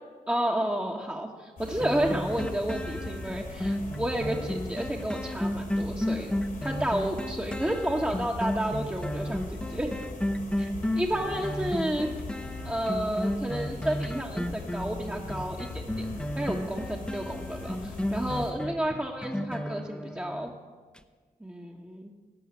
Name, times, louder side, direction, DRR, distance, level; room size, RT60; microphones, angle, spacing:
voice 1, 0.3-6.3 6.6-9.9 10.6-12.1 12.6-16.1 16.4-20.5 21.4-22.1, right 1 dB, 10° right, -1 dB, 1.3 m, -31 dB
sound 1, 1.6-18.5, left 3 dB, 75° left, 3.5 m, -40 dB
sound 2, 1.8-20.5 21.0-21.1, left 1 dB, 5° left, 0.9 m, -33 dB
16.5 x 5.6 x 9.6 m, 1.5 s
cardioid pair, 55°, 15 cm